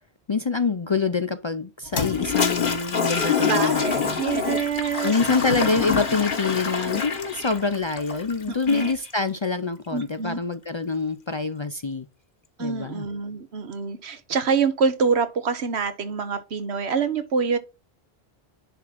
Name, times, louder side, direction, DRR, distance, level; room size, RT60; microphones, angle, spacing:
voice 1, 0.3-4.2 5.0-12.1 12.6-13.0, left 4 dB, 40° left, 0.4 m, -26 dB
Toilet flush, 1.9-9.1, left 6 dB, 55° left, 1.2 m, -26 dB
voice 2, 3.4-5.2 8.5-8.9 9.9-10.4 12.6-17.6, right 5 dB, 85° right, 1.3 m, -26 dB
10.0 x 3.6 x 5.9 m
omnidirectional pair, 1.1 m